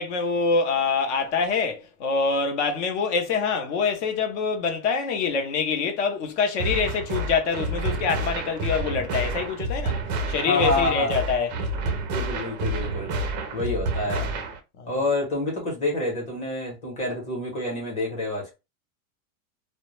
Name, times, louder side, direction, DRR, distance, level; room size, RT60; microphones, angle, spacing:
voice 1, 0.0-10.0 10.3-11.5 14.8-14.9, left 5 dB, 55° left, 0.8 m, -25 dB
sound 1, 6.6-14.6, right 2 dB, 35° right, 0.4 m, -29 dB
voice 2, 10.4-11.1 12.1-13.1 13.5-14.3 14.9-18.5, left 2 dB, 15° left, 0.8 m, -27 dB
2.2 x 2.1 x 3.0 m
supercardioid pair, 175°, 41 cm